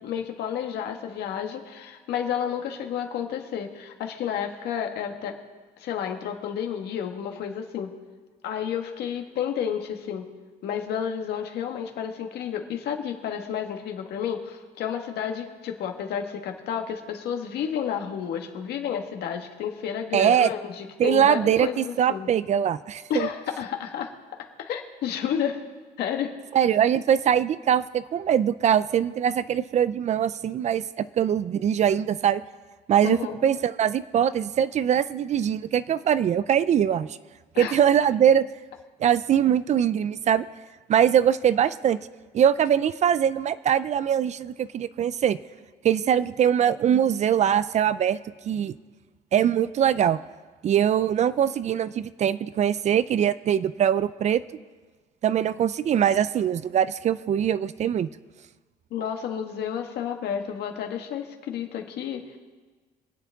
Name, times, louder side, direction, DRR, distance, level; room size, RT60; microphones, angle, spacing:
voice 1, 0.0-5.4 5.8-7.9 8.4-10.3 10.6-22.3 23.1-24.1 24.6-25.6 26.0-26.3 33.0-33.4 37.5-37.8 58.9-62.4, left 8 dB, 75° left, 4 dB, 1.6 m, -31 dB
voice 2, 20.1-20.5 21.0-23.3 26.5-32.4 32.9-37.1 37.6-38.4 39.0-40.4 40.9-42.0 42.3-45.4 45.8-48.2 48.5-48.7 49.3-50.2 50.6-54.4 55.2-58.1, right 9 dB, 45° right, 16 dB, 0.4 m, -22 dB
25.0 x 8.4 x 3.5 m, 1.4 s
cardioid pair, 110°, 17 cm